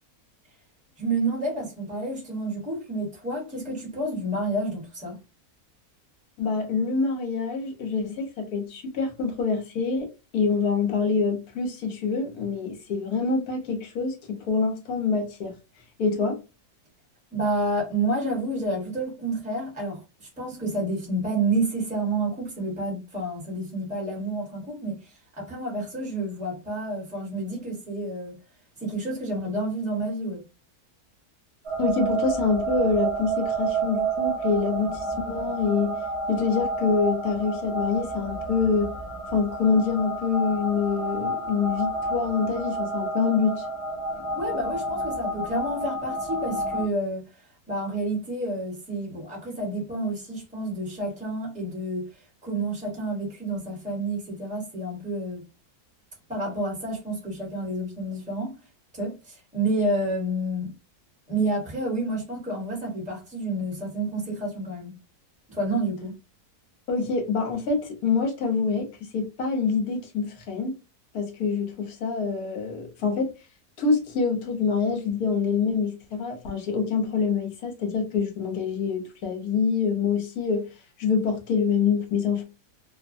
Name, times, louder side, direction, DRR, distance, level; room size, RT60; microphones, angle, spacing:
voice 1, 1.0-5.2 17.3-28.4 28.8-30.4 44.3-47.3 47.7-52.1 52.4-55.4 56.3-58.5 58.9-60.7 61.3-64.9 65.5-66.1, right 2 dB, 5° right, 1.0 m, -29 dB
voice 2, 6.4-15.5 16.0-16.4 31.8-36.0 36.3-38.9 39.3-43.7 66.9-70.7 71.1-73.3 73.8-80.7 81.0-82.4, left 5 dB, 70° left, 1.3 m, -26 dB
sound 1, 31.6-46.8, right 3 dB, 50° right, 0.3 m, -30 dB
2.9 x 2.2 x 2.5 m
omnidirectional pair, 1.7 m